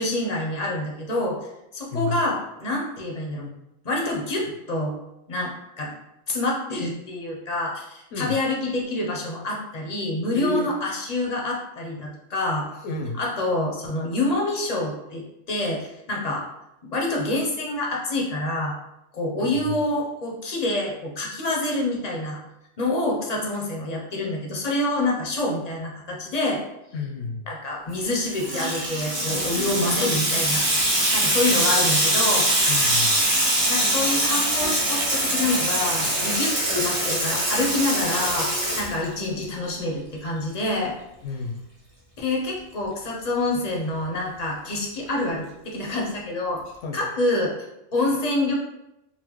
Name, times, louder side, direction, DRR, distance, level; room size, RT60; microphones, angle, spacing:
voice 1, 0.0-1.4 1.7-3.5 3.8-4.9 5.3-5.9 6.3-12.7 13.2-16.5 16.9-18.7 19.1-22.4 22.8-26.6 27.5-32.5 33.7-40.9 42.2-46.6 46.9-47.5 47.9-48.5, left 2 dB, 45° left, -2 dB, 0.5 m, -27 dB
voice 2, 10.3-10.7 12.8-13.2 19.4-19.8 26.9-27.5 32.7-33.2 41.2-41.6 46.8-47.0, left 4 dB, 80° left, 3 dB, 0.9 m, -30 dB
Water tap faucet / Sink (filling or washing), 28.0-39.5, right 1 dB, 40° right, 0.5 m, -23 dB
sound 1, 30.4-36.4, right 2 dB, 60° right, 1.1 m, -39 dB
4.1 x 2.1 x 3.0 m, 0.87 s
omnidirectional pair, 1.3 m